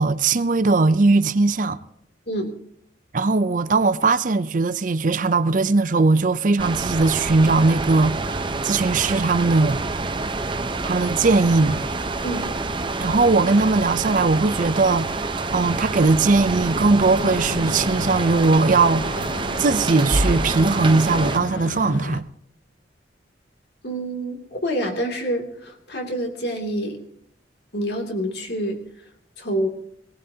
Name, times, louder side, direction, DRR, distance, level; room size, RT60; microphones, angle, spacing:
voice 1, 0.0-1.8 3.1-9.8 10.8-11.8 13.0-22.2, right 3 dB, 45° right, 0.6 m, -19 dB
sound 1, 6.6-21.4, right 3 dB, 25° right, 0.9 m, -27 dB
sound 2, 16.3-21.4 21.7-21.9, right 2 dB, 80° right, 0.8 m, -39 dB
sound 3, 17.2-22.2, left 3 dB, 85° left, 0.7 m, -34 dB
voice 2, 23.8-27.0 27.7-28.8 29.4-29.7, right 1 dB, 60° left, 2.8 m, -27 dB
18.5 x 18.5 x 2.9 m
head